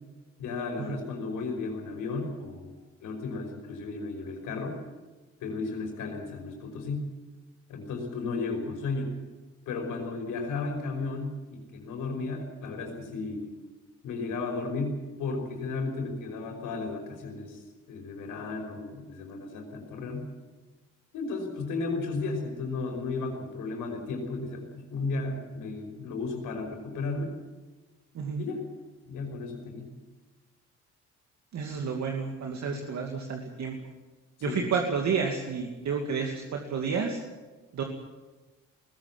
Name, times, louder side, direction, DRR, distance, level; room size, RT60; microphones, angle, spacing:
voice 1, 0.4-4.8 5.4-7.1 7.7-9.1 9.7-13.5 14.0-17.6 17.9-20.2 21.1-27.3 28.4-28.6 29.1-29.9 32.7-32.8 34.4-34.7, left 3 dB, 85° left, 3 dB, 5.6 m, -34 dB
voice 2, 28.1-28.4 31.5-33.8 34.4-37.2 37.7-37.8, right 5 dB, 65° right, 2 dB, 2.5 m, -30 dB
20.0 x 15.5 x 9.8 m, 1.2 s
cardioid pair, 90°, 30 cm